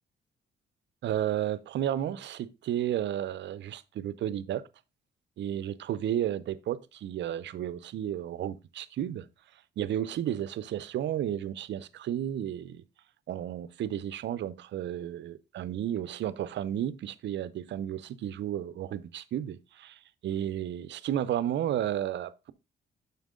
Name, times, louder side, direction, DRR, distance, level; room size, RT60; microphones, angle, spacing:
voice 1, 1.0-4.6 5.4-9.3 9.8-12.8 13.3-22.5, right 11 dB, 65° right, 0.6 m, -32 dB
7.3 x 5.8 x 3.6 m
cardioid pair, 90°, 20 cm